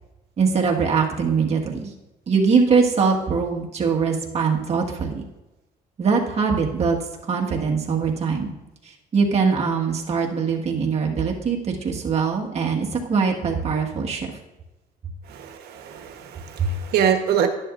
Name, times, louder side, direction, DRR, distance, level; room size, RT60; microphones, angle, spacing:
voice 1, 0.4-1.9 2.3-5.2 6.0-7.0 7.3-8.5 9.1-14.3 16.6-16.7, right 5 dB, 40° right, 0 dB, 1.7 m, -22 dB
voice 2, 15.3-17.5, right 8 dB, 70° right, 5 dB, 1.2 m, -24 dB
11.0 x 10.5 x 2.6 m, 1.0 s
cardioid pair, 110°, 17 cm